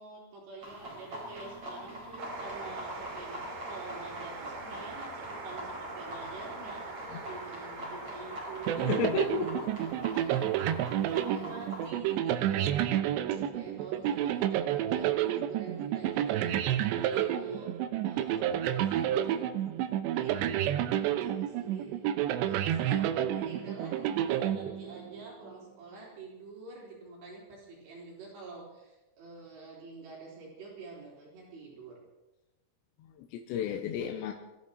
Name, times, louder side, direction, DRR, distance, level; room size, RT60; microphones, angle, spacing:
voice 1, 0.0-9.0 9.8-10.8 11.1-13.1 13.5-17.7 18.1-19.5 20.2-32.0, right 4 dB, 70° right, -4 dB, 6.1 m, -46 dB
sound 1, 0.6-11.9, equal, 35° right, 5.4 m, -44 dB
sound 2, 2.2-15.1, right 3 dB, 55° right, 4.3 m, -44 dB
sound 3, 8.7-25.2, right 11 dB, 90° right, 3.0 m, -30 dB
voice 2, 8.8-9.5 33.0-34.3, left 8 dB, 85° left, 3 dB, 3.3 m, -33 dB
23.5 x 14.0 x 4.2 m, 1.0 s
omnidirectional pair, 5.0 m